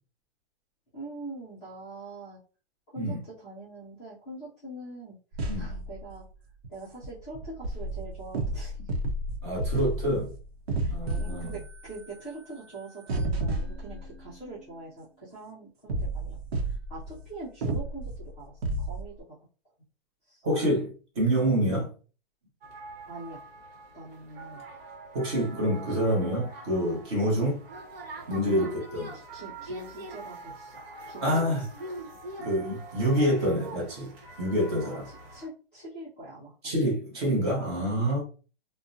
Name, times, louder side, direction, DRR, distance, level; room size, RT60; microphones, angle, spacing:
voice 1, 0.9-2.4 2.9-5.2 5.6-6.2 6.7-8.9 10.8-16.4 16.6-19.4 20.2-20.4 23.1-23.4 23.9-24.7 28.4-28.8 29.1-30.7 31.1-31.6 32.4-32.5 34.8-36.7, right 2 dB, 10° left, 0.4 m, -43 dB
sound 1, 5.3-6.2 6.6-6.7 7.0-14.6 15.9-17.3 17.6-19.1, right 2 dB, 90° right, 0.7 m, -32 dB
voice 2, 9.4-10.3 10.9-11.5 20.4-21.9 25.1-27.6 28.3-29.1 31.2-31.6 32.4-34.1 34.4-35.1 36.6-38.2, equal, 25° right, 0.9 m, -27 dB
sound 2, 22.6-35.5, right 1 dB, 70° right, 1.0 m, -43 dB
2.5 x 2.1 x 2.5 m
hypercardioid pair, 170°, 30 cm